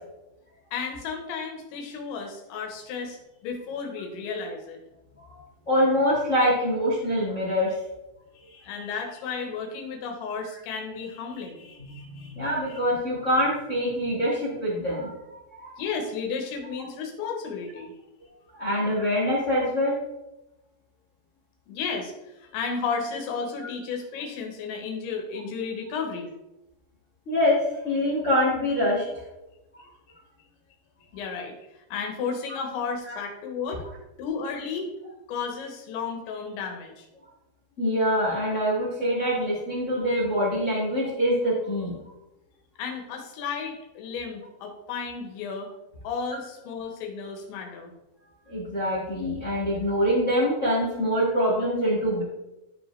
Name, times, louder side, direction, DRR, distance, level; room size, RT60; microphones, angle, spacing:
voice 1, 0.7-4.8 8.4-12.8 15.8-17.9 21.7-26.3 31.1-33.8 34.2-34.9 35.3-37.1 42.8-45.7 46.0-47.9, left 5 dB, 90° left, 2 dB, 3.6 m, -33 dB
voice 2, 5.7-7.7 11.9-15.8 18.5-20.0 27.3-29.0 29.7-29.8 32.5-32.6 33.0-33.1 37.8-41.9 48.5-52.2, equal, 60° left, -5 dB, 0.7 m, -25 dB
12.5 x 4.9 x 3.4 m, 0.95 s
omnidirectional pair, 5.1 m